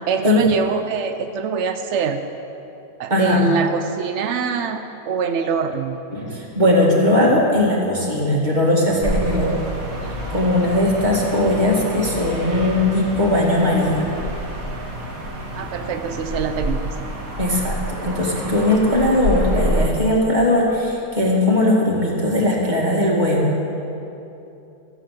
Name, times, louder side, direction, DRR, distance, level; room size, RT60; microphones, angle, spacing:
voice 1, 0.1-2.2 3.0-6.0 15.6-16.8, right 6 dB, 75° right, 7 dB, 0.6 m, -24 dB
voice 2, 3.1-3.5 6.1-9.6 10.3-14.1 17.4-23.6, left 1 dB, 25° right, -3 dB, 2.1 m, -19 dB
sound 1, 9.0-19.9, equal, 55° right, 1.9 m, -28 dB
14.0 x 8.0 x 7.5 m, 2.9 s
omnidirectional pair, 1.8 m